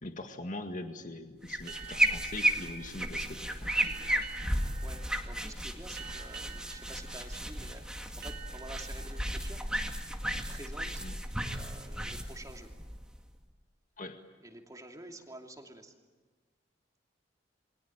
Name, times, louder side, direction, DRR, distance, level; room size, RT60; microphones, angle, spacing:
voice 1, 0.0-3.7 11.0-11.1 14.0-14.2, left 2 dB, 45° left, 5 dB, 1.9 m, -42 dB
sound 1, 1.4-13.4, right 1 dB, 5° right, 2.1 m, -34 dB
sound 2, 1.7-11.0, right 7 dB, 60° right, 2.3 m, -50 dB
voice 2, 4.8-7.9 8.2-9.7 10.3-11.0 11.4-12.7 14.4-15.9, right 1 dB, 20° right, 2 dB, 2.8 m, -49 dB
29.0 x 23.0 x 8.9 m, 1.3 s
head